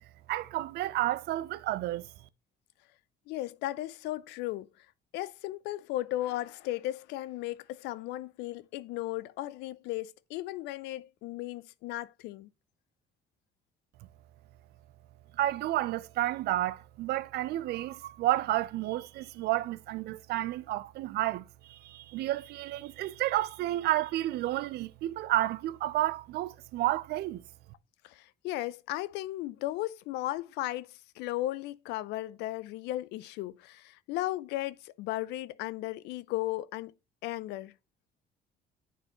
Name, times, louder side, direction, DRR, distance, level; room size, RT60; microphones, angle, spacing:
voice 1, 0.3-2.1 15.4-27.4, right 15 dB, 75° right, 0.5 m, -31 dB
voice 2, 3.3-4.9 5.1-12.5 28.0-36.9 37.2-37.7, left 16 dB, 85° left, 0.4 m, -36 dB
9.1 x 4.1 x 2.9 m
cardioid pair, 110°, 17 cm